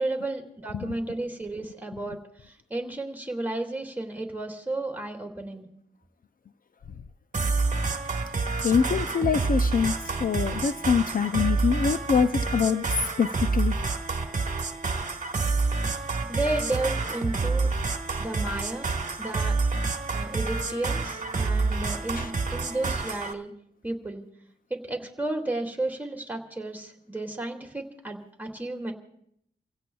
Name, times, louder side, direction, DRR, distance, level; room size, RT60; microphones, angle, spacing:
voice 1, 0.0-2.2 2.7-5.7 16.3-17.7 18.2-18.9 19.2-19.6 20.1-23.5 23.8-24.2 24.7-28.9, right 2 dB, 10° right, 1 dB, 2.3 m, -32 dB
sound 1, 7.3-23.3, right 3 dB, 45° right, 1.3 m, -28 dB
voice 2, 8.6-9.9 10.2-12.8 13.2-13.7 22.2-22.3, left 6 dB, 50° left, 10 dB, 0.5 m, -24 dB
29.0 x 16.5 x 2.3 m, 0.72 s
wide cardioid pair, 90°, 18 cm